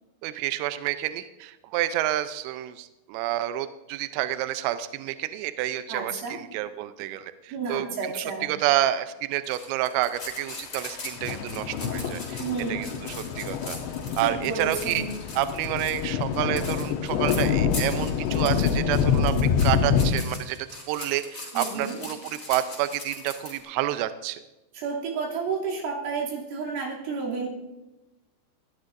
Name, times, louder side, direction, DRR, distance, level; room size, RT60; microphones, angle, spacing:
voice 1, 0.2-12.4 12.7-13.8 14.2-15.0 15.3-19.3 19.6-20.6 20.9-24.4, right 13 dB, 90° right, 11 dB, 2.5 m, -29 dB
voice 2, 5.9-6.4 7.5-8.5 12.4-13.1 14.2-15.2 21.5-22.0 24.8-27.5, right 4 dB, 70° right, -3 dB, 5.2 m, -31 dB
sound 1, 9.4-23.6, left 2 dB, 20° left, 4.0 m, -40 dB
sound 2, 10.3-10.4 11.0-20.1, left 7 dB, 75° left, 2.7 m, -26 dB
20.0 x 14.5 x 2.6 m, 1.0 s
omnidirectional pair, 5.9 m